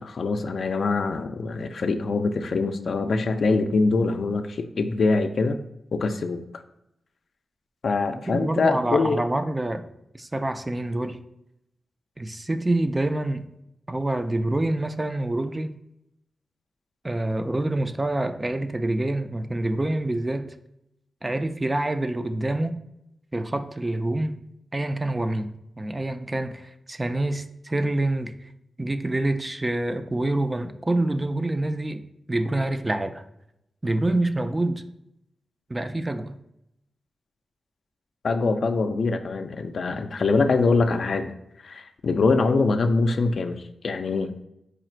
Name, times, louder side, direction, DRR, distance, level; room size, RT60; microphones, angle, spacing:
voice 1, 0.0-5.7 5.9-6.4 7.8-9.2 38.2-41.3 41.6-44.3, left 3 dB, 65° left, 0.3 m, -24 dB
voice 2, 8.3-9.9 10.1-11.2 12.2-13.5 13.9-15.7 17.0-20.5 21.2-22.8 23.3-24.4 24.7-25.5 25.8-28.3 28.8-32.0 32.3-33.2 33.8-34.8 35.7-36.4, right 1 dB, 20° right, 0.3 m, -26 dB
4.8 x 2.4 x 4.4 m
wide cardioid pair, 95°, 0 cm